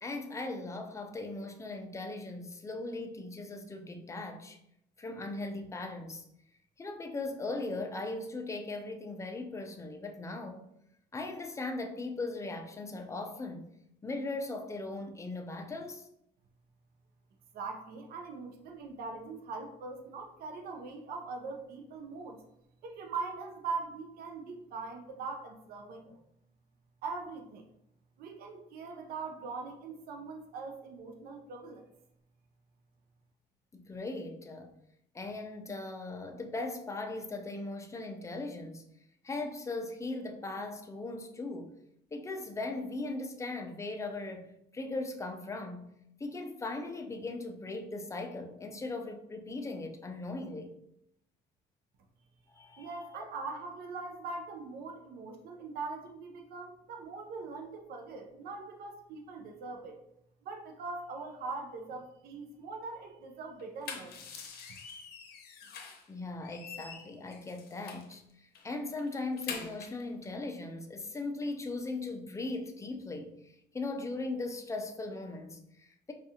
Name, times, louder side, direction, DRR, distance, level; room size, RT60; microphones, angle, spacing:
voice 1, 0.0-4.6 5.0-6.3 6.8-10.6 11.1-13.7 14.0-16.1 33.7-34.7 35.1-38.9 39.2-41.7 42.1-44.5 44.7-45.9 46.2-50.7 52.5-53.2 66.1-76.1, left 2 dB, 15° left, 0.5 m, -39 dB
voice 2, 17.5-22.4 22.8-26.2 27.0-27.7 28.2-31.8 52.8-60.0 60.4-64.3 64.5-64.8, right 4 dB, 65° right, 0.6 m, -41 dB
sound 1, 63.6-66.1 66.4-68.1 68.5-68.7 69.0-70.0, left 6 dB, 70° left, 0.7 m, -45 dB
4.6 x 2.4 x 2.8 m
cardioid pair, 110°, 17 cm